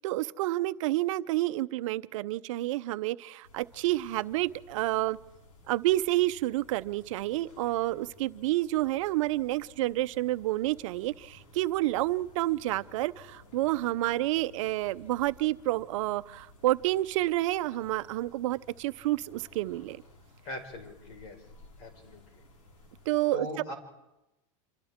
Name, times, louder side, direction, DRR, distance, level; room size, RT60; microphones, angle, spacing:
voice 1, 0.0-5.2 5.7-20.0 23.1-23.4, right 17 dB, 70° right, 14 dB, 0.7 m, -29 dB
sound 1, 3.4-23.1, left 2 dB, 85° left, 5.2 m, -56 dB
voice 2, 20.4-21.5 21.8-22.4 23.3-23.7, left 1 dB, 60° left, 4 dB, 4.9 m, -41 dB
27.0 x 27.0 x 3.6 m, 0.93 s
supercardioid pair, 130°, 17 cm